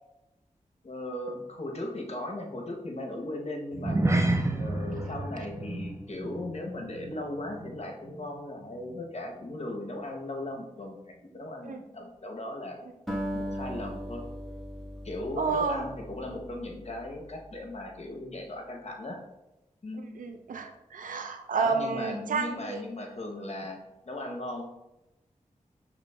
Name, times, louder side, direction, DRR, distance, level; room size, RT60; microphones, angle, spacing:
voice 1, 0.8-4.0 4.6-12.8 13.3-14.3 15.0-19.2 19.8-20.0 21.6-23.8 24.1-24.7, left 1 dB, 50° left, 2 dB, 0.8 m, -37 dB
sound 1, 3.7-8.4 8.6-8.9 9.4-9.5, right 2 dB, 20° right, 0.5 m, -30 dB
Acoustic guitar, 13.1-17.5, equal, ahead, 1.1 m, -38 dB
voice 2, 15.4-15.9 20.2-22.8, right 5 dB, 80° right, 6 dB, 0.4 m, -30 dB
6.0 x 2.9 x 2.2 m, 0.95 s
cardioid pair, 45°, 14 cm